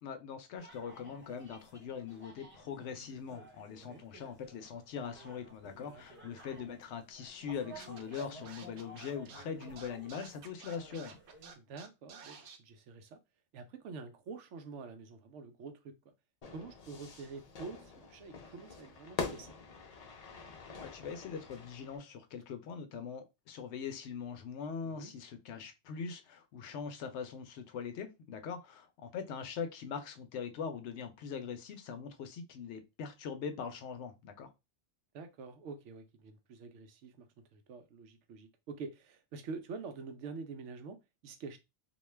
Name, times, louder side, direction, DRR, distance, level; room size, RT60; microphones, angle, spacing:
voice 1, 0.0-11.2 20.8-34.5, left 6 dB, 75° left, 0.9 m, -42 dB
Ambience schoolcinema, 0.6-11.6, right 1 dB, 10° right, 0.7 m, -55 dB
Scratching (performance technique), 7.8-12.6, right 6 dB, 60° right, 0.7 m, -51 dB
voice 2, 11.6-13.2 13.5-15.9 16.5-19.6 24.8-25.1 35.1-41.6, right 4 dB, 85° right, 0.9 m, -47 dB
Fire / Fireworks, 16.4-22.0, left 4 dB, 45° left, 0.6 m, -44 dB
2.5 x 2.2 x 3.1 m
omnidirectional pair, 1.2 m